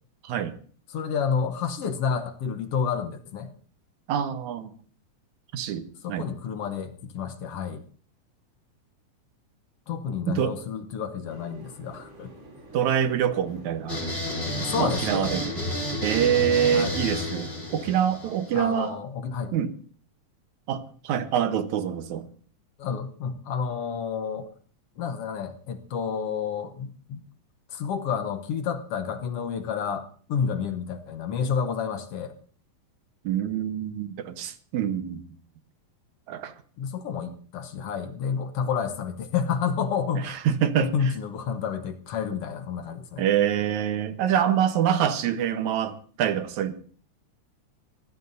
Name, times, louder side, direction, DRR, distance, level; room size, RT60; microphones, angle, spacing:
voice 1, 0.2-0.6 4.1-4.7 5.5-6.3 10.3-10.6 12.7-14.1 14.8-15.5 16.0-19.0 19.5-19.7 20.7-22.3 33.2-35.2 36.3-36.5 40.2-41.1 43.2-46.8, right 9 dB, 75° right, 2.3 m, -25 dB
voice 2, 0.9-3.5 6.0-7.8 9.9-12.3 14.6-15.3 16.7-16.9 18.5-19.5 22.8-24.5 25.0-27.2 27.7-32.3 36.8-40.4 40.8-43.2, left 6 dB, 60° left, 1.7 m, -30 dB
sound 1, 11.3-17.9, right 1 dB, 45° right, 5.2 m, -48 dB
sound 2, 13.9-18.8, equal, 20° left, 4.0 m, -31 dB
23.5 x 15.0 x 2.7 m
omnidirectional pair, 3.6 m